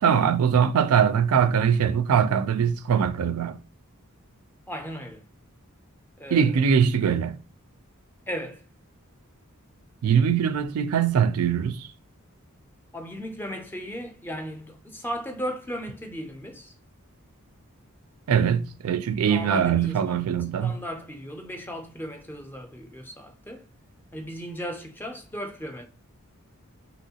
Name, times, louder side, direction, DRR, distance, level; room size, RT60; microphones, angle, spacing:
voice 1, 0.0-3.6 6.3-7.4 10.0-11.9 18.3-20.8, right 7 dB, 85° right, 0.4 m, -22 dB
voice 2, 4.7-5.2 6.2-6.5 8.3-8.6 12.9-16.7 19.2-20.3 20.6-23.6 24.1-25.8, equal, 10° left, 0.4 m, -36 dB
2.9 x 2.9 x 2.8 m
head